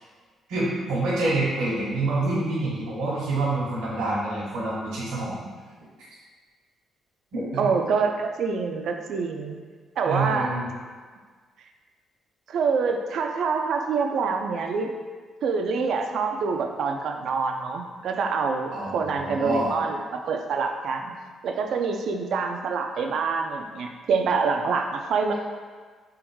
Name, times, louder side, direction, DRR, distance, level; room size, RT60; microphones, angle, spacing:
voice 1, 0.5-5.5 7.3-7.7 10.0-10.7 18.7-19.7, right 2 dB, 90° right, -8 dB, 1.2 m, -27 dB
voice 2, 7.6-9.6 10.0-10.5 12.5-14.9 15.4-21.1 21.4-25.3, right 5 dB, 70° right, 4 dB, 0.5 m, -26 dB
3.6 x 3.0 x 4.7 m, 1.5 s
cardioid pair, 90°, 0 cm